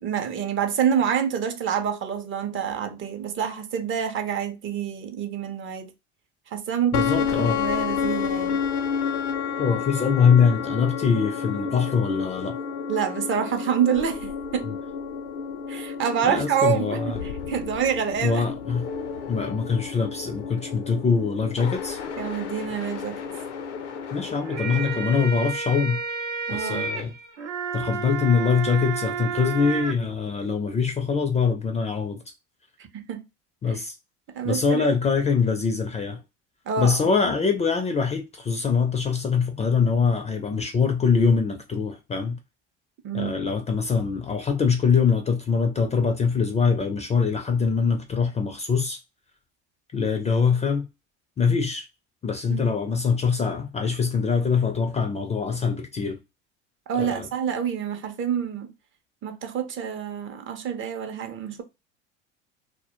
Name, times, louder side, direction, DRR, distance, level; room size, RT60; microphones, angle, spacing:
voice 1, 0.0-5.9 6.5-8.6 12.9-14.7 15.7-17.0 17.5-18.5 22.2-23.2 26.5-26.9 32.9-33.2 33.7-33.8 34.3-34.9 36.7-37.1 43.0-43.3 52.5-52.6 56.9-58.7 59.2-61.6, right 8 dB, 35° right, 0.5 m, -27 dB
sound 1, 6.9-25.3, left 6 dB, 80° left, 0.5 m, -31 dB
voice 2, 6.9-7.6 9.6-12.6 14.6-14.8 16.2-17.2 18.2-18.9 19.3-22.0 24.1-26.0 26.5-27.1 27.7-32.2 33.6-34.0 34.4-36.2 36.8-42.4 43.1-49.0 49.9-50.9 51.4-51.8 52.2-56.2 56.9-57.3, left 5 dB, 20° left, 0.4 m, -23 dB
sound 2, 24.3-29.9, right 6 dB, 85° right, 0.7 m, -31 dB
2.1 x 2.1 x 2.9 m
hypercardioid pair, 75°, 35 cm